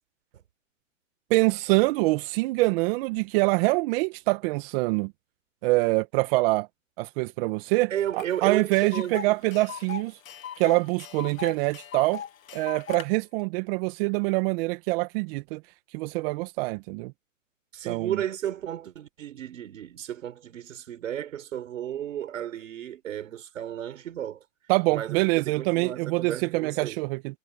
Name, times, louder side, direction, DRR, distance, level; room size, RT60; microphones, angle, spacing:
voice 1, 1.3-5.1 5.6-6.7 7.0-10.2 10.6-12.2 12.5-15.6 15.9-17.1 17.9-18.2 24.7-27.4, right 23 dB, 45° right, 1.9 m, -25 dB
voice 2, 7.9-9.3 17.7-24.4 24.9-27.0, right 10 dB, 80° right, 4.9 m, -33 dB
Tick, 8.2-8.3 8.5-13.1, left 9 dB, 85° left, 1.4 m, -39 dB
hypercardioid pair, 130°, 39 cm